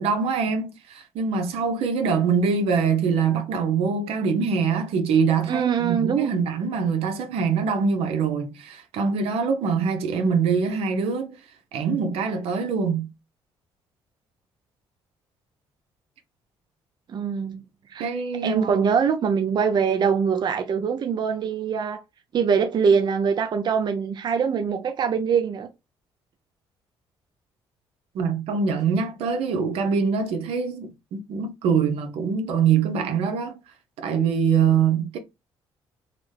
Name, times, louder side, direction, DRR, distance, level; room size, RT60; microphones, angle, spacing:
voice 1, 0.0-11.4 11.7-13.1 18.0-18.8 28.1-33.6 34.0-35.2, right 6 dB, 80° right, 0.7 m, -24 dB
voice 2, 5.5-6.3 17.1-17.6 17.9-18.1 18.4-22.0 22.3-25.7, right 6 dB, 50° right, 0.5 m, -23 dB
3.9 x 2.1 x 3.2 m
cardioid pair, 85°, 10 cm